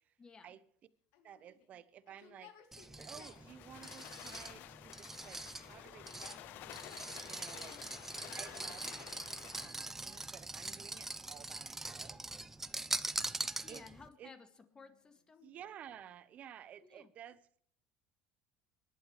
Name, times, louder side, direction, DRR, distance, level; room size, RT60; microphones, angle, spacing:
voice 1, 0.2-0.6 7.7-7.9 13.6-14.5 14.8-15.5 16.8-17.1, left 5 dB, 20° left, 7 dB, 2.2 m, -56 dB
Yell, 1.1-3.5 4.4-5.1 5.5-7.4 8.1-8.8 9.5-11.3 12.7-13.5 14.4-16.1, left 9 dB, 75° left, 2.2 m, -64 dB
voice 2, 1.2-2.5 3.0-6.4 6.7-7.0 7.2-7.7 8.3-12.2 13.7-13.8 14.2-14.3 15.4-17.6, right 9 dB, 45° right, 15 dB, 1.0 m, -54 dB
sound 1, 2.7-14.1, right 2 dB, 10° right, 0.7 m, -43 dB
sound 2, 3.3-9.8, left 14 dB, 60° left, 0.7 m, -51 dB
27.5 x 11.5 x 3.3 m, 0.62 s
supercardioid pair, 125°, 4 cm